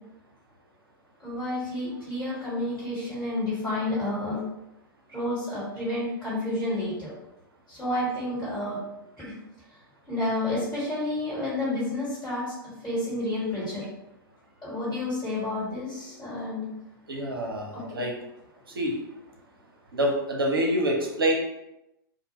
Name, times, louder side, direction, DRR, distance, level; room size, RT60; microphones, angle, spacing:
voice 1, 1.2-4.4 5.1-7.1 7.7-8.8 9.2-9.3 10.1-12.4 12.8-13.8 14.6-16.7 17.7-18.0, left 1 dB, 15° left, -10 dB, 1.2 m, -30 dB
voice 2, 17.1-18.1 18.8-18.9 20.0-21.3, right 1 dB, 75° right, -1 dB, 0.6 m, -26 dB
2.0 x 2.0 x 3.0 m, 0.91 s
figure-of-eight pair, 100°, 12 cm